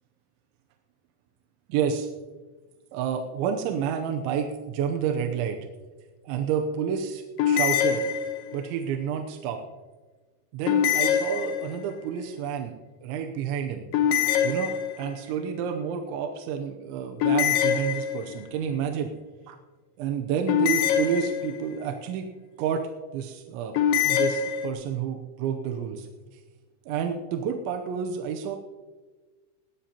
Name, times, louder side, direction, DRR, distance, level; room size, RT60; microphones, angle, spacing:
voice 1, 1.7-2.1 2.9-5.6 6.2-8.0 8.5-9.6 10.5-12.7 13.0-13.8 14.4-19.1 19.5-19.6 20.0-22.3 22.6-23.7 24.0-26.1 26.9-28.6, right 7 dB, 80° right, 4 dB, 3.1 m, -29 dB
sound 1, 7.4-8.7 10.7-12.0 13.9-15.2 17.2-18.5 20.5-21.8 23.8-24.7, left 8 dB, 80° left, 3.4 m, -24 dB
20.5 x 15.5 x 2.9 m, 1.3 s
omnidirectional pair, 5.3 m